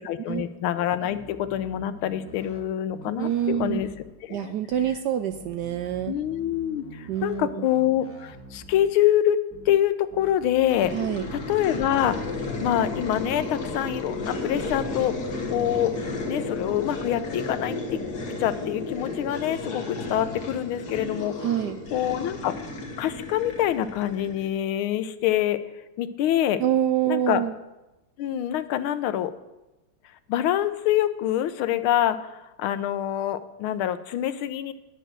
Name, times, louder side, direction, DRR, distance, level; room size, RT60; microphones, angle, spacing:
voice 1, 0.0-3.9 4.2-4.5 6.1-9.4 9.7-10.9 11.3-12.2 12.6-15.2 15.5-15.9 16.3-17.8 18.4-21.3 21.9-22.5 23.0-25.6 26.0-26.6 27.0-27.4 28.2-29.3 30.3-34.7, left 11 dB, 90° left, 12 dB, 1.5 m, -25 dB
sound 1, 1.1-2.6 2.9-4.1 4.7-5.0 5.3-7.4 7.7-8.9 9.5-9.8 10.1-10.7, right 1 dB, 10° left, 1.0 m, -46 dB
voice 2, 3.2-3.8 4.3-6.1 7.1-7.7 10.9-11.3 21.4-21.8 26.6-27.6, right 10 dB, 75° right, 9 dB, 1.0 m, -26 dB
sound 2, 10.7-24.6, left 2 dB, 55° left, 1.8 m, -33 dB
10.0 x 6.6 x 7.6 m, 0.98 s
omnidirectional pair, 2.2 m